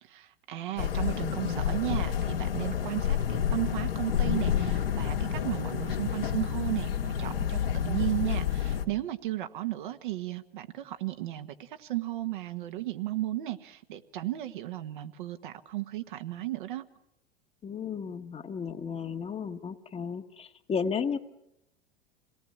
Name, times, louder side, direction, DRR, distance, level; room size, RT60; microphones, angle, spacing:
voice 1, 0.0-16.8, right 15 dB, 55° right, 8 dB, 1.5 m, -34 dB
sound 1, 0.8-8.8, left 9 dB, 75° left, 2.1 m, -29 dB
voice 2, 17.6-21.2, left 6 dB, 20° left, 8 dB, 1.3 m, -33 dB
27.5 x 18.5 x 8.7 m, 0.84 s
figure-of-eight pair, 85°, 29 cm